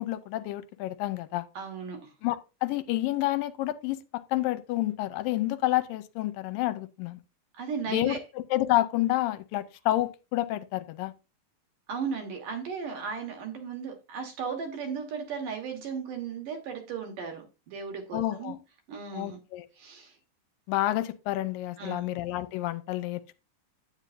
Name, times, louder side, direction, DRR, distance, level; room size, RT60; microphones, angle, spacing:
voice 1, 0.0-1.5 2.2-7.2 7.9-11.1 18.1-18.6 19.1-19.7 20.7-23.3, left 15 dB, 85° left, 2.3 m, -29 dB
voice 2, 1.5-2.1 7.6-8.2 11.9-18.5 18.9-19.4 19.8-20.1 21.8-22.1, right 6 dB, 65° right, 3.3 m, -36 dB
9.5 x 9.2 x 2.6 m
omnidirectional pair, 4.1 m